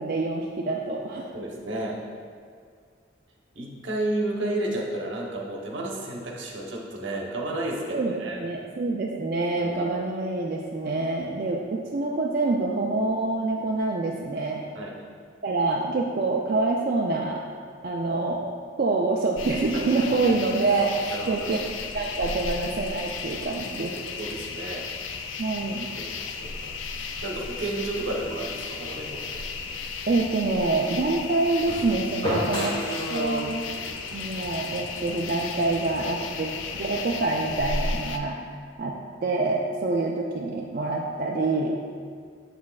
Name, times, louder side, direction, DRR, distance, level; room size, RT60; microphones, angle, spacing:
voice 1, 0.0-1.3 7.9-14.6 15.4-17.4 17.8-18.4 18.8-21.6 21.9-23.9 25.4-25.9 30.1-32.7 33.1-33.5 34.1-36.5 36.8-38.4 38.8-38.9 39.2-41.8, right 3 dB, 50° right, -2 dB, 0.4 m, -26 dB
voice 2, 1.3-2.0 3.5-8.5 9.6-9.8 14.7-15.0 21.1-21.5 24.2-24.8 26.0-29.4 32.2-33.4 36.0-36.5 39.7-39.9, right 1 dB, 75° right, -1 dB, 0.9 m, -32 dB
sound 1, 19.4-38.2, left 4 dB, 85° left, 0.4 m, -34 dB
sound 2, 29.8-35.6, left 1 dB, 25° left, 1.2 m, -36 dB
7.3 x 6.2 x 2.4 m, 2.1 s
head